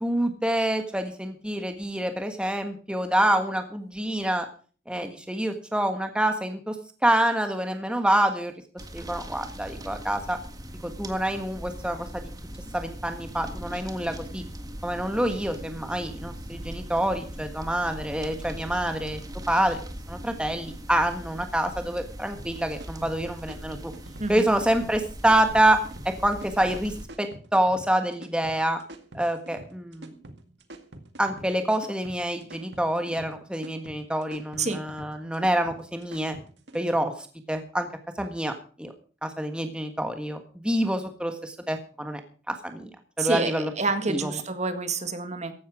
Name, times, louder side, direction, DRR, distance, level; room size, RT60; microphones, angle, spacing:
voice 1, 0.0-4.5 4.9-6.7 7.0-8.5 8.9-10.4 10.8-12.3 12.7-14.4 14.8-19.2 19.5-19.8 20.1-23.9 24.3-25.8 26.0-28.8 29.1-30.1 31.2-36.4 36.7-37.1 37.5-37.9 38.2-38.5 38.8-38.9 39.2-42.2 42.5-42.9 43.2-43.7 44.1-44.3, right 1 dB, 5° right, 6 dB, 1.5 m, -26 dB
sound 1, 8.8-27.1, equal, 20° right, 1.7 m, -40 dB
sound 2, 22.4-36.8, right 1 dB, 80° right, 2.0 m, -46 dB
voice 2, 43.2-45.5, right 3 dB, 40° right, 8 dB, 1.9 m, -28 dB
15.5 x 11.5 x 4.9 m, 0.40 s
head